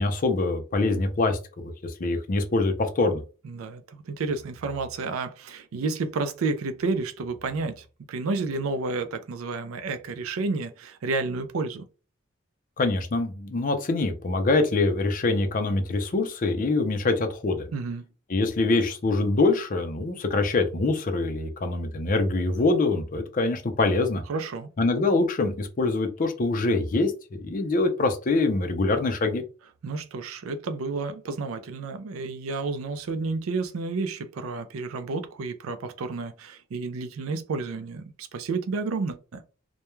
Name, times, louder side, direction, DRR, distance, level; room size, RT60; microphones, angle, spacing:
voice 1, 0.0-3.2 12.8-17.7 18.3-24.2 24.8-29.4, left 3 dB, 40° left, 0.4 m, -24 dB
voice 2, 3.4-11.9 17.7-18.0 24.3-24.7 29.8-39.4, right 3 dB, 80° right, 0.4 m, -31 dB
2.2 x 2.2 x 3.0 m
head